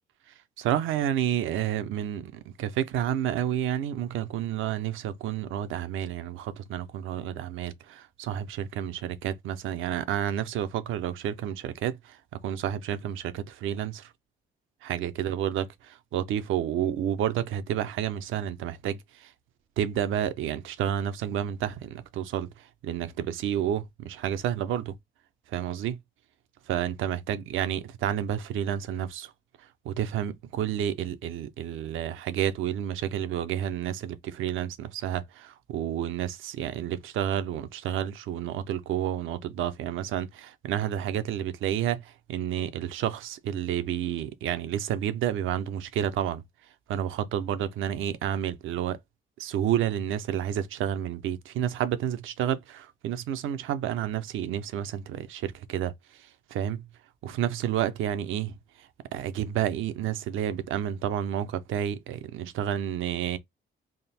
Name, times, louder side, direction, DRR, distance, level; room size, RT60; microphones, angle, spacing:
voice 1, 0.6-14.1 14.8-15.7 16.1-19.3 19.8-24.9 25.5-26.0 26.7-29.3 29.8-46.4 46.9-49.0 49.4-55.9 56.5-56.8 57.2-58.5 59.1-63.4, right 10 dB, 85° right, 0.6 m, -30 dB
3.6 x 2.0 x 4.1 m
cardioid pair, 90°, 20 cm